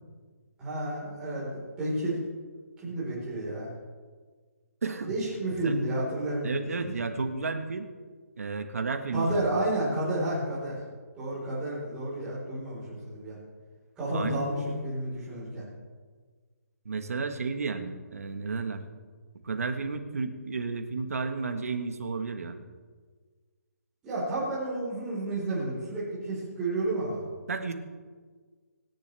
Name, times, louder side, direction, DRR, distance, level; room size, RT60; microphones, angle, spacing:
voice 1, 0.6-2.2 2.8-3.7 5.1-7.0 9.1-10.8 11.1-13.4 14.0-15.6 24.0-27.2, right 1 dB, 10° right, -10 dB, 4.4 m, -31 dB
voice 2, 4.8-5.1 5.6-5.7 6.4-7.9 8.4-9.4 14.1-14.4 16.8-18.8 19.4-22.6 27.5-27.7, right 4 dB, 60° right, 7 dB, 1.5 m, -32 dB
26.5 x 10.5 x 3.5 m, 1.5 s
hypercardioid pair, 180°, 9 cm